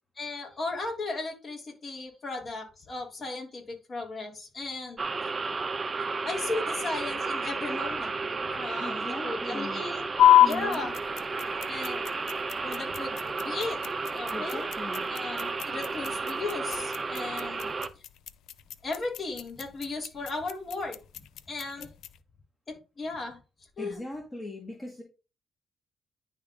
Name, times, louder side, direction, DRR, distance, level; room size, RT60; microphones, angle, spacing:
voice 1, 0.2-5.0 6.2-8.2 8.5-10.0 10.4-10.9 11.7-12.1 12.6-13.8 14.1-14.7 15.1-17.7 18.8-21.0 21.5-21.9 22.7-23.4 23.8-24.0, left 3 dB, 40° left, 0 dB, 3.3 m, -36 dB
sound 1, 5.0-17.9, right 4 dB, 30° right, 0.7 m, -33 dB
voice 2, 8.8-9.8 10.4-10.9 14.3-15.1 20.1-20.2 21.8-21.9 23.8-25.0, left 1 dB, 20° left, 0 dB, 1.7 m, -40 dB
sound 2, 10.2-22.2, left 12 dB, 80° left, 0.5 m, -28 dB
10.5 x 3.7 x 3.8 m, 0.30 s
cardioid pair, 90°, 0 cm